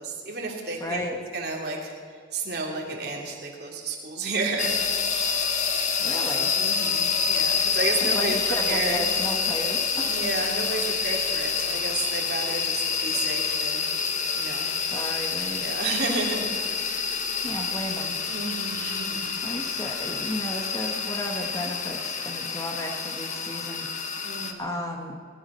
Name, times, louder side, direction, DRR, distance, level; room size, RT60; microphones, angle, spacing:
voice 1, 0.0-1.0 1.3-4.7 5.1-5.6 6.6-8.4 8.6-9.1 10.1-13.9 14.4-14.8 15.5-17.1 18.3-19.3 24.2-24.8, right 3 dB, 55° right, -1 dB, 3.0 m, -32 dB
voice 2, 0.8-1.2 6.0-6.5 8.0-10.1 14.8-15.7 17.4-18.2 19.4-23.9 24.6-25.2, left 1 dB, 15° left, 2 dB, 1.4 m, -33 dB
sound 1, 4.6-24.5, left 6 dB, 40° left, 1.1 m, -27 dB
19.0 x 12.5 x 5.6 m, 2.2 s
head